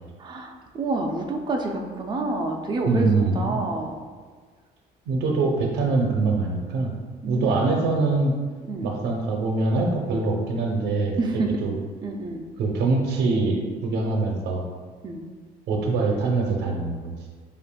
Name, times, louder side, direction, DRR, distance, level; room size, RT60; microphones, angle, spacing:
voice 1, 0.2-3.0 3.4-4.0 7.2-7.9 8.7-8.9 11.2-11.6 12.0-12.4 15.0-15.2, right 3 dB, 25° right, 1 dB, 0.5 m, -28 dB
voice 2, 2.9-3.6 5.1-6.9 7.3-8.3 8.8-11.7 12.6-14.6 15.7-17.1, right 3 dB, 85° right, 1 dB, 0.7 m, -24 dB
7.3 x 2.5 x 2.2 m, 1.5 s
cardioid pair, 110°, 17 cm